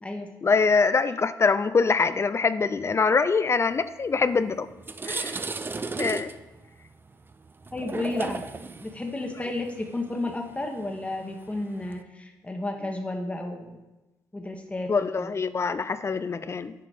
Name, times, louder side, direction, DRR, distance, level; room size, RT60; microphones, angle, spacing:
voice 1, 0.4-4.7 5.1-5.4 6.0-6.3 14.9-16.7, left 4 dB, 30° left, 13 dB, 0.4 m, -24 dB
sound 1, 4.2-4.3 4.7-12.0, right 3 dB, 25° right, 0.5 m, -36 dB
voice 2, 7.7-8.4 8.8-13.8 14.3-14.9 15.2-15.3, left 2 dB, 15° left, 3 dB, 1.2 m, -32 dB
7.7 x 4.9 x 5.1 m, 1.0 s
supercardioid pair, 55°, 8 cm